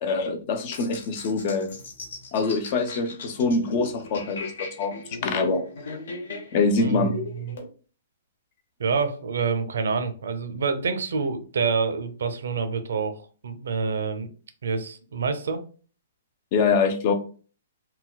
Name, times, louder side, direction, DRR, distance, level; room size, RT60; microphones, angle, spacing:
voice 1, 0.0-1.7 2.3-5.6 6.5-7.2 16.5-17.1, left 4 dB, 30° left, 7 dB, 0.4 m, -24 dB
sound 1, 0.7-7.7, left 2 dB, 60° left, 0.9 m, -38 dB
voice 2, 8.8-14.3 14.6-15.6, right 5 dB, 80° right, 9 dB, 0.5 m, -27 dB
3.9 x 2.2 x 2.2 m, 0.38 s
hypercardioid pair, 175°, 0 cm